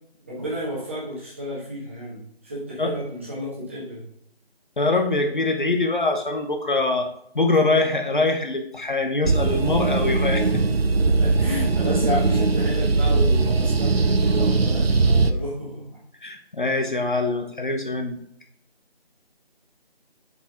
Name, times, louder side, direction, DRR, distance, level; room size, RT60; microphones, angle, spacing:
voice 1, 0.3-4.0 11.0-16.0, equal, 15° right, -8 dB, 1.3 m, -31 dB
voice 2, 4.8-7.1 7.3-10.8 16.2-18.2, left 3 dB, 55° left, 5 dB, 1.0 m, -23 dB
sound 1, 9.2-15.3, right 3 dB, 75° right, 0.6 m, -20 dB
6.7 x 5.0 x 3.6 m, 0.69 s
figure-of-eight pair, 165°, 30 cm